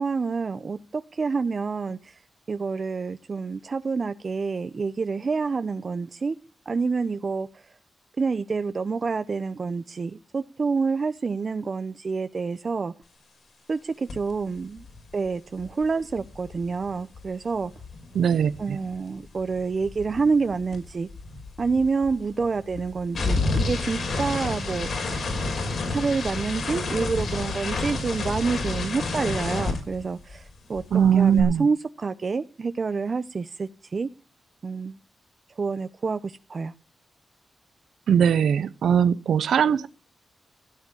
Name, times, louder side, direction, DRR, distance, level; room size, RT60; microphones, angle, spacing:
voice 1, 0.0-2.2 2.5-6.3 6.7-7.6 8.2-12.9 13.7-14.8 15.1-17.7 18.6-21.1 21.6-25.3 25.9-34.1 34.6-35.0 35.6-36.7, right 4 dB, 50° right, 0.9 m, -28 dB
sound 1, 14.1-14.3 14.6-19.0 19.2-30.5 30.7-31.4, left 3 dB, 70° left, 5.6 m, -30 dB
voice 2, 18.1-18.8 30.9-31.7 38.1-39.9, right 8 dB, 85° right, 0.7 m, -20 dB
16.0 x 7.2 x 9.7 m
cardioid pair, 60°, 0 cm